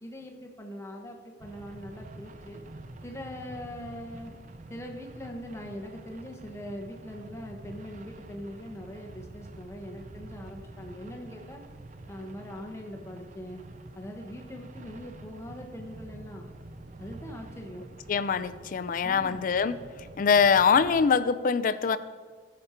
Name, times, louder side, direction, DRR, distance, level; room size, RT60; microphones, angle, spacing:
voice 1, 0.0-2.6 3.0-4.3 4.7-11.6 12.1-13.6 14.0-16.5 17.0-17.9 19.0-19.4, equal, 15° left, 2 dB, 1.0 m, -42 dB
sound 1, 1.4-21.1, right 2 dB, 45° right, 0.6 m, -47 dB
voice 2, 18.1-19.8 20.2-22.0, left 6 dB, 50° left, 13 dB, 0.4 m, -23 dB
14.0 x 5.2 x 4.3 m, 1.6 s
head